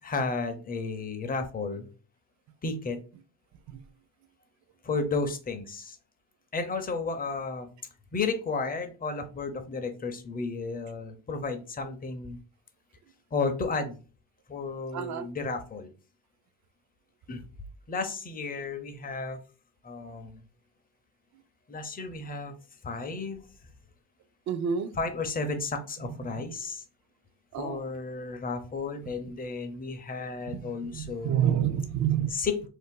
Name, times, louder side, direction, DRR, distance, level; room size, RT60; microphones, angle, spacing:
voice 1, 0.0-1.9 2.6-3.0 4.8-6.0 6.5-7.7 8.1-12.4 13.3-14.0 14.5-15.9 17.3-17.4 17.9-19.4 19.8-20.4 21.7-22.5 22.8-23.4 25.0-26.8 27.6-31.5 32.3-32.7, left 4 dB, 25° left, 0.5 m, -33 dB
voice 2, 14.9-15.3 24.5-24.9 27.5-27.8 30.5-32.3, right 9 dB, 50° right, 0.5 m, -28 dB
2.6 x 2.1 x 3.6 m
cardioid pair, 100°, 39 cm